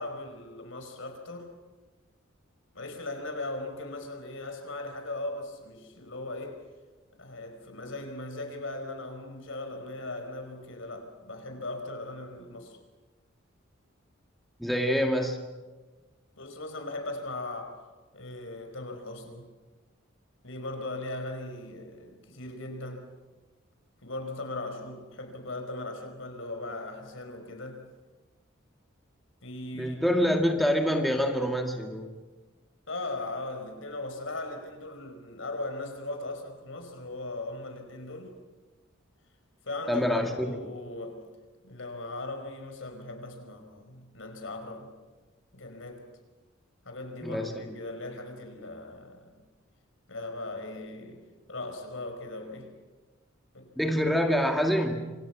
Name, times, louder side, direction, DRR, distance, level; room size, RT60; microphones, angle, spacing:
voice 1, 0.0-1.5 2.7-6.6 7.2-12.8 16.4-17.9 18.1-19.5 20.4-23.1 24.0-27.9 29.4-30.0 32.9-38.3 39.6-40.1 40.4-41.3 41.6-44.9 45.5-46.0 46.8-49.4 50.1-52.8 53.5-53.7, left 2 dB, 70° left, 5.0 m, -38 dB
voice 2, 14.6-15.4 29.8-32.1 39.9-40.6 47.2-47.8 53.8-55.1, equal, ahead, 1.8 m, -26 dB
27.5 x 27.0 x 6.0 m
head